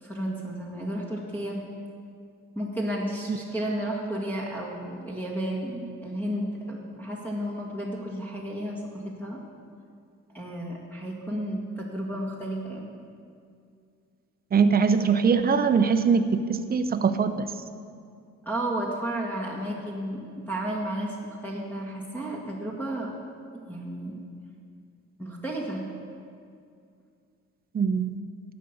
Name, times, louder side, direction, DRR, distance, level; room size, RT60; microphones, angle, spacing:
voice 1, 0.0-1.6 2.6-9.4 10.3-12.8 18.4-23.1 23.7-24.2 25.2-25.9, right 1 dB, 5° left, -3 dB, 1.7 m, -32 dB
voice 2, 14.5-17.5 27.7-28.1, right 5 dB, 30° right, 9 dB, 0.7 m, -22 dB
11.5 x 5.3 x 8.3 m, 2.3 s
cardioid pair, 90°, 30 cm